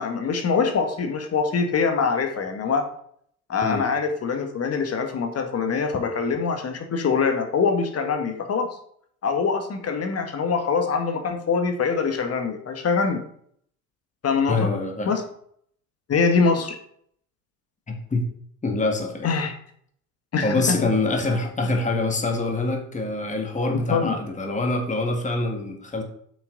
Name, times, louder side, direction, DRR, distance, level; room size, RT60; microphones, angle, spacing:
voice 1, 0.0-2.9 3.5-8.7 9.2-13.2 14.2-14.7 15.0-15.2 16.1-16.8 19.2-19.5 20.3-20.5 23.9-24.1, left 5 dB, 30° left, 6 dB, 1.6 m, -24 dB
voice 2, 14.5-15.1 17.9-18.3 18.6-19.3 20.4-26.0, left 2 dB, 15° left, 3 dB, 1.8 m, -25 dB
8.8 x 6.0 x 4.0 m, 0.64 s
hypercardioid pair, 75°, 49 cm